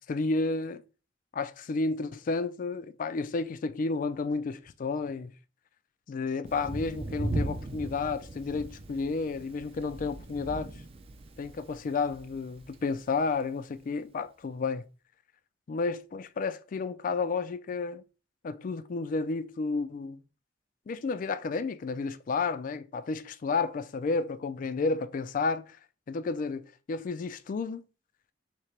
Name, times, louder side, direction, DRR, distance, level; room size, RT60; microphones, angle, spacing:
voice 1, 0.1-0.8 1.3-5.3 6.1-10.7 11.4-14.9 15.7-18.0 18.4-20.2 20.9-25.8 26.1-26.6 26.9-27.8, left 4 dB, 45° left, 0.3 m, -31 dB
Thunder, 6.4-13.3, right 1 dB, 30° right, 0.4 m, -38 dB
2.9 x 2.8 x 4.5 m
head